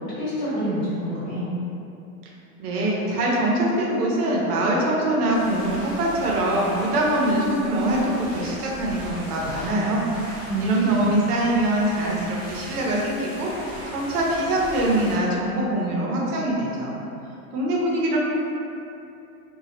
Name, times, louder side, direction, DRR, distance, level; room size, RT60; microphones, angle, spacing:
voice 1, 0.0-1.5 10.5-11.1, right 1 dB, 45° left, -10 dB, 1.1 m, -27 dB
voice 2, 2.6-10.1 10.3-17.0 17.5-18.2, right 1 dB, 85° right, -3 dB, 0.7 m, -23 dB
sound 1, 5.3-15.1, equal, 10° right, 0.5 m, -39 dB
2.3 x 2.0 x 2.7 m, 2.8 s
hypercardioid pair, 135°, 45 cm